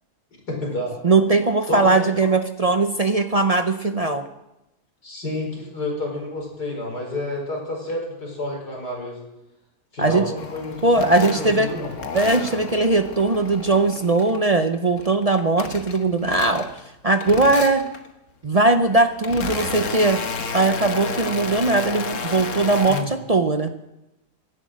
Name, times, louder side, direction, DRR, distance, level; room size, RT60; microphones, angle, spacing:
voice 1, 0.5-1.0 1.7-2.3 5.0-9.2 9.9-11.9 22.9-23.1, left 2 dB, 80° left, -1 dB, 5.4 m, -29 dB
voice 2, 1.0-4.3 10.0-10.2 10.8-11.7 12.1-16.7 17.0-17.8 18.4-20.2 20.5-23.7, right 3 dB, 50° right, 7 dB, 0.4 m, -19 dB
sound 1, 10.4-14.5 14.8-16.9 17.2-18.1 18.7-23.0, left 5 dB, 55° left, 1.5 m, -32 dB
16.5 x 11.0 x 6.4 m, 0.93 s
omnidirectional pair, 1.7 m